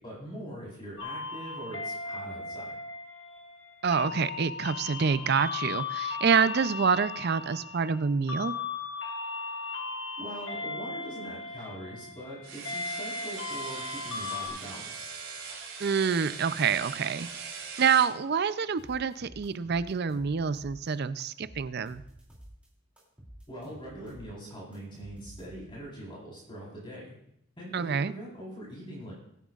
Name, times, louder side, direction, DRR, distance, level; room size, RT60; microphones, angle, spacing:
voice 1, 0.0-2.8 10.2-15.1 23.5-27.2 27.6-29.1, equal, 25° left, -5 dB, 4.0 m, -42 dB
sound 1, 1.0-14.5, left 4 dB, 55° left, 1.5 m, -37 dB
voice 2, 3.8-8.5 15.8-17.5 17.8-22.0 27.7-28.1, right 6 dB, 50° right, 14 dB, 0.4 m, -27 dB
sound 2, 12.4-18.1, right 5 dB, 80° right, 3.1 m, -41 dB
sound 3, 18.8-20.9 21.2-22.7 23.0-25.9, equal, 5° right, 2.7 m, -50 dB
22.0 x 9.1 x 2.4 m, 0.75 s
head